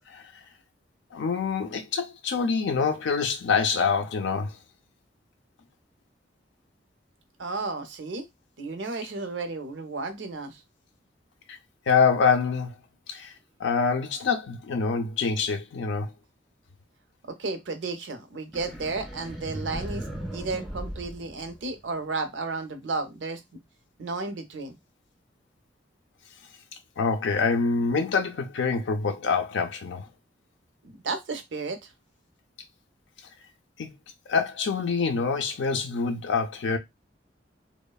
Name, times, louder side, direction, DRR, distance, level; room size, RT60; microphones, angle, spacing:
voice 1, 1.1-4.5 11.5-11.6 11.9-12.7 13.1-13.3 13.6-16.1 27.0-30.1 33.8-33.9 34.3-36.8, left 5 dB, 75° left, 0.4 m, -25 dB
voice 2, 7.4-8.3 8.6-10.6 17.3-20.1 20.3-23.4 24.0-24.8 30.8-31.8, right 3 dB, 80° right, 0.6 m, -33 dB
sound 1, 18.5-22.0, right 1 dB, ahead, 0.5 m, -37 dB
3.0 x 2.0 x 2.2 m
head